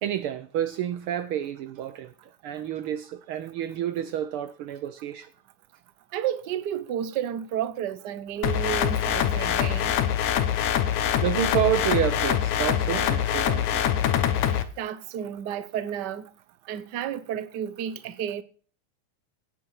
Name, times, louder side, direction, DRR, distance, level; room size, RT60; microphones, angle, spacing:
voice 1, 0.0-2.1 2.4-5.3 11.2-13.9, right 11 dB, 90° right, 1.2 m, -29 dB
voice 2, 6.1-10.0 14.8-16.3 16.7-18.4, right 10 dB, 65° right, 1.0 m, -31 dB
sound 1, 8.4-14.6, left 9 dB, 80° left, 2.6 m, -24 dB
17.0 x 7.8 x 5.7 m
omnidirectional pair, 3.4 m